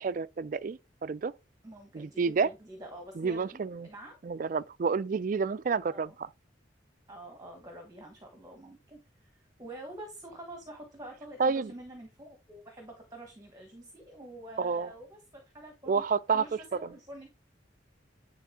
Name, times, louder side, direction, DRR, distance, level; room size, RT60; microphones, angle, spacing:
voice 1, 0.0-1.3 1.9-2.5 3.2-3.9 4.2-6.1 11.4-11.7 14.6-14.9 15.9-16.4 16.7-16.9, right 5 dB, 45° right, 0.3 m, -29 dB
voice 2, 1.6-4.2 5.9-6.2 7.1-9.3 9.6-16.0 16.3-17.3, right 1 dB, 20° right, 1.2 m, -47 dB
10.0 x 3.6 x 3.6 m
head